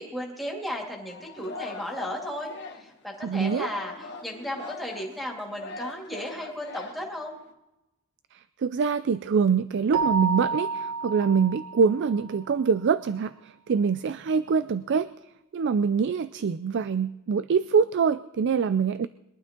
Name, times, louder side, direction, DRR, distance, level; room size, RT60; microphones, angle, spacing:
voice 1, 0.0-2.5 2.8-7.4, equal, ahead, -1 dB, 2.5 m, -35 dB
Singing, 1.1-7.5, left 3 dB, 50° left, 1.3 m, -42 dB
voice 2, 3.2-3.7 8.3-19.1, right 6 dB, 55° right, 14 dB, 0.4 m, -25 dB
Keyboard (musical), 9.9-12.4, right 4 dB, 75° right, 1.1 m, -30 dB
21.5 x 12.0 x 3.7 m, 0.93 s
head